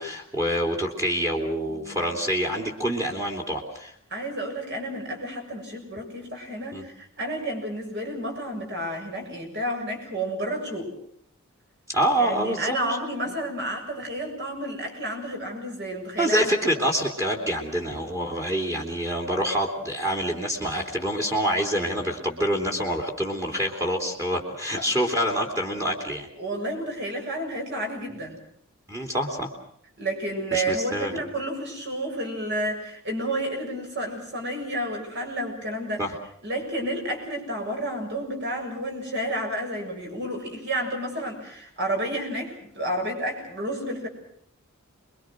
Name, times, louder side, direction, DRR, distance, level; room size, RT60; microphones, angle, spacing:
voice 1, 0.0-3.9 6.7-6.8 11.9-12.8 16.2-26.3 28.9-29.5 30.5-31.1 36.0-36.1, equal, 15° right, 2 dB, 3.1 m, -26 dB
voice 2, 1.7-2.1 4.1-10.9 12.2-16.5 24.7-25.0 26.4-28.4 30.0-36.0 36.4-44.1, right 1 dB, 50° right, 2 dB, 7.4 m, -31 dB
28.0 x 23.0 x 6.3 m, 0.66 s
head